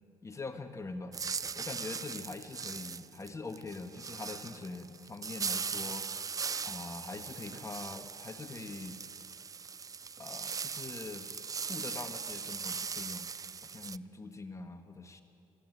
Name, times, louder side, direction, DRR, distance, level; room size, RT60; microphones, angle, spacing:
voice 1, 0.2-1.2 1.5-6.0 6.6-9.0 10.2-11.3 11.7-13.3 13.6-15.2, left 3 dB, 25° left, 6 dB, 1.6 m, -43 dB
sound 1, 1.1-14.0, right 5 dB, 30° right, 0.5 m, -39 dB
24.0 x 13.0 x 9.5 m, 2.9 s
hypercardioid pair, 60°, 12 cm